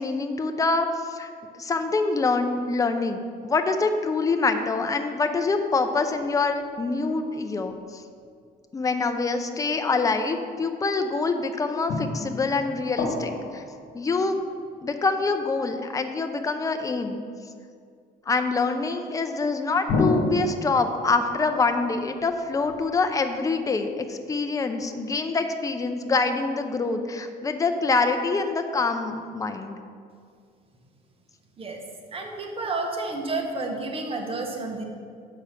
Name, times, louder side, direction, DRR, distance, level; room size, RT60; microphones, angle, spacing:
voice 1, 0.0-8.0 8.7-13.6 13.9-14.4 14.8-17.2 18.3-29.8, left 3 dB, 20° left, 6 dB, 0.6 m, -25 dB
sound 1, 6.1-6.9 7.7-7.8 11.9-14.7 19.9-23.4, left 3 dB, 70° left, 1.2 m, -31 dB
voice 2, 32.1-34.8, right 3 dB, 35° right, 2 dB, 1.2 m, -30 dB
7.2 x 5.1 x 5.7 m, 2.2 s
cardioid pair, 110°, 17 cm